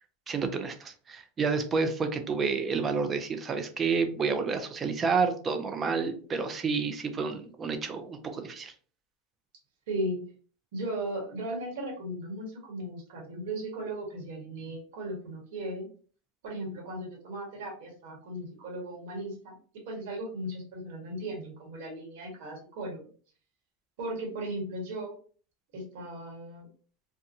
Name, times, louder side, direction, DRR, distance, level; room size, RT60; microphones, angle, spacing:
voice 1, 0.3-8.7, right 5 dB, 25° right, 8 dB, 0.5 m, -29 dB
voice 2, 9.9-10.3 10.7-15.9 16.4-19.5 19.8-23.1 24.0-25.1 25.7-26.7, right 1 dB, 65° right, 0 dB, 1.2 m, -36 dB
2.7 x 2.2 x 2.6 m, 0.42 s
supercardioid pair, 115°, 0 cm